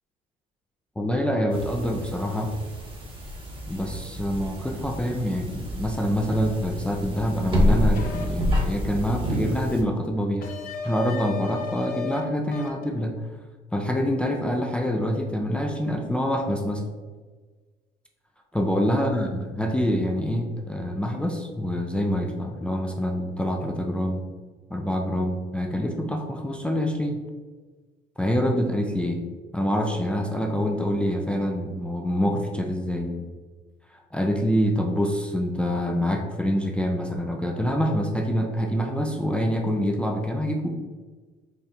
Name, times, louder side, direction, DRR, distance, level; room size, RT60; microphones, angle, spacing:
voice 1, 1.0-2.5 3.7-10.5 10.8-13.2 13.7-16.8 18.5-24.2 24.7-27.2 28.2-29.2 29.5-33.2 34.1-40.7, equal, 5° left, 2 dB, 0.4 m, -26 dB
sound 1, 1.5-9.8, equal, 30° right, 0.9 m, -28 dB
sound 2, 7.9-8.3 10.4-12.2 12.5-12.8, left 6 dB, 60° left, 0.6 m, -34 dB
4.2 x 2.3 x 3.8 m, 1.4 s
cardioid pair, 110°, 17 cm